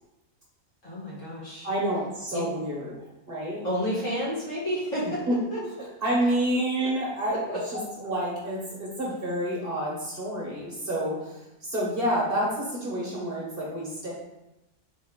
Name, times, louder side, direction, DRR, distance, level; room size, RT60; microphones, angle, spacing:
voice 1, 0.8-1.7 2.3-2.5 3.6-5.2 5.5-5.6 6.8-6.9 7.5-7.8, equal, 60° left, -7 dB, 2.0 m, -30 dB
voice 2, 1.6-2.9 3.3-3.6 5.3-5.4 5.6-5.7 6.0-14.1, right 1 dB, 45° right, -4 dB, 1.1 m, -29 dB
4.1 x 3.5 x 3.6 m, 0.92 s
omnidirectional pair, 1.5 m